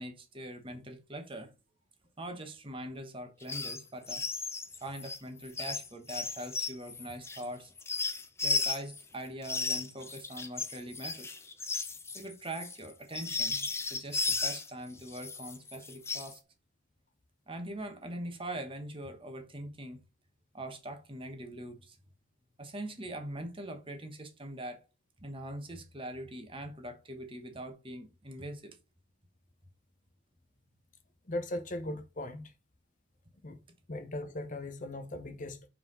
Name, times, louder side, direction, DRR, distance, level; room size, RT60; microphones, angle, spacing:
voice 1, 0.0-1.5 2.2-4.2 4.8-7.7 8.4-11.4 12.1-16.4 17.5-20.0 20.5-22.0 22.6-24.8 25.2-28.8, right 1 dB, 25° right, 1.3 m, -42 dB
sound 1, 3.4-3.8 4.0-9.0 9.4-14.7 15.1-16.3, left 4 dB, 15° left, 0.6 m, -35 dB
voice 2, 31.3-32.5 33.4-33.6 33.9-35.7, left 1 dB, 40° left, 0.8 m, -38 dB
5.7 x 4.7 x 4.0 m
head